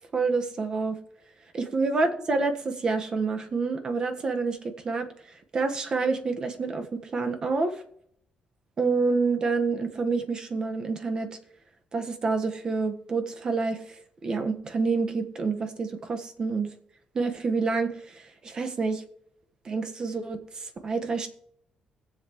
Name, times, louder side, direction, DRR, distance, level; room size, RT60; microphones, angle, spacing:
voice 1, 0.1-1.0 1.5-5.1 5.5-7.8 8.8-11.3 11.9-13.8 14.2-16.7 17.1-19.0 19.6-21.3, right 4 dB, 35° right, 6 dB, 1.4 m, -28 dB
21.0 x 7.7 x 3.1 m, 0.67 s
cardioid pair, 135°, 2 cm